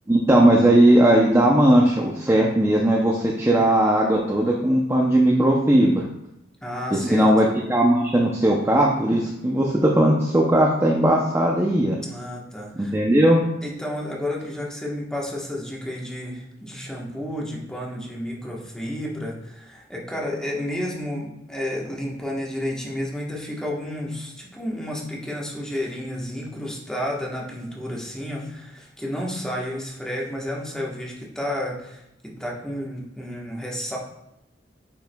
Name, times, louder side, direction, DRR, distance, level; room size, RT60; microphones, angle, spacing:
voice 1, 0.1-6.0 6.9-12.0 12.8-13.4, right 1 dB, 15° right, -2 dB, 0.5 m, -18 dB
voice 2, 6.6-7.3 12.0-13.0 13.6-34.0, left 1 dB, 5° left, -3 dB, 1.1 m, -31 dB
9.2 x 4.7 x 2.2 m, 0.85 s
head